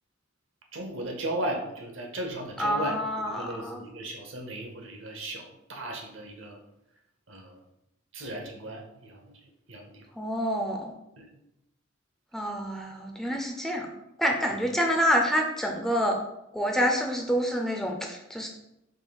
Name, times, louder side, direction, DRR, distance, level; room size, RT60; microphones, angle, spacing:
voice 1, 0.7-6.6 7.3-7.6 8.1-9.4 9.7-10.0 11.2-11.3, right 1 dB, 75° right, 2 dB, 0.8 m, -36 dB
voice 2, 2.6-3.8 10.2-10.9 12.3-13.9 14.2-16.1 16.5-18.5, equal, ahead, 1 dB, 0.4 m, -27 dB
5.0 x 3.7 x 2.3 m, 0.86 s
head